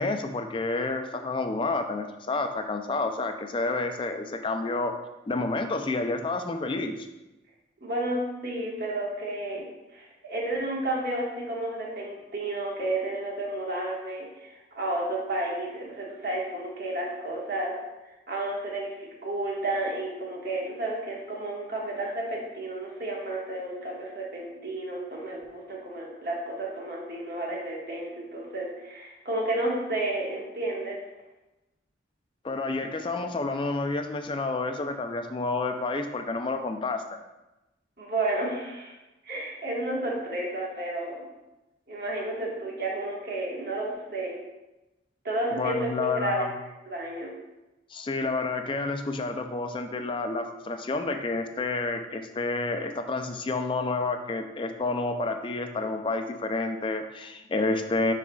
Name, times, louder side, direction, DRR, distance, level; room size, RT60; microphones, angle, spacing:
voice 1, 0.0-4.9 5.3-7.1 32.4-37.0 45.5-46.5 47.9-58.1, left 3 dB, 25° left, 6 dB, 0.3 m, -29 dB
voice 2, 7.8-17.7 18.3-31.0 38.0-38.9 39.2-41.1 41.9-44.4 45.2-46.5 46.9-47.3, right 1 dB, 50° right, -3 dB, 1.4 m, -31 dB
10.0 x 4.2 x 2.3 m, 1.0 s
head